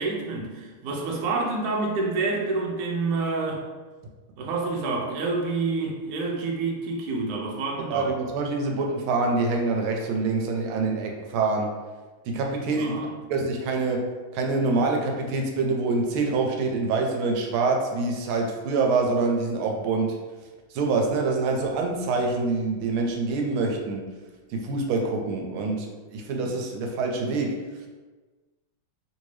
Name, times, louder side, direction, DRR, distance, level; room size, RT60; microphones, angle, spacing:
voice 1, 0.0-3.6 4.4-8.1 12.8-13.1, right 3 dB, 70° right, -1 dB, 0.9 m, -28 dB
voice 2, 7.9-11.7 12.3-13.0 13.3-20.2 20.7-24.1 24.5-27.6, right 3 dB, 85° right, 2 dB, 1.4 m, -25 dB
3.2 x 2.7 x 3.1 m, 1.3 s
omnidirectional pair, 2.3 m